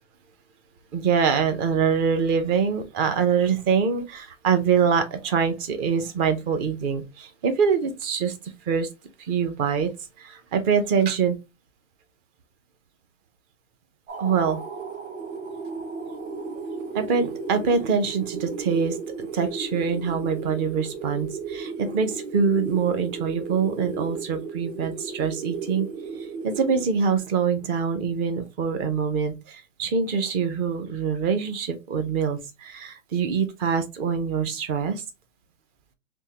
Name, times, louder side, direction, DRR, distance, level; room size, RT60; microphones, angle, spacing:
voice 1, 0.9-8.3 8.7-8.9 9.2-9.9 10.2-11.4 14.2-14.6 16.9-25.9 26.4-35.0, right 6 dB, 25° right, 0.5 m, -24 dB
sound 1, 14.1-27.3, right 4 dB, 70° right, 1.2 m, -35 dB
3.6 x 2.8 x 2.8 m
hypercardioid pair, 135°, 39 cm